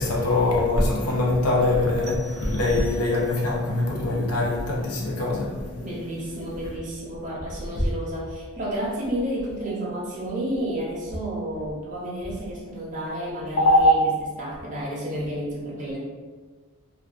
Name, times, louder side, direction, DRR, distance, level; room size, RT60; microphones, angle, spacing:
voice 1, 0.0-5.8 13.6-13.9, left 1 dB, 85° left, -2 dB, 0.6 m, -22 dB
sound 1, 2.0-3.6, right 4 dB, 80° right, 0.6 m, -47 dB
voice 2, 5.8-14.1 14.4-16.0, right 1 dB, 35° right, -5 dB, 0.5 m, -31 dB
2.3 x 2.2 x 2.4 m, 1.4 s
head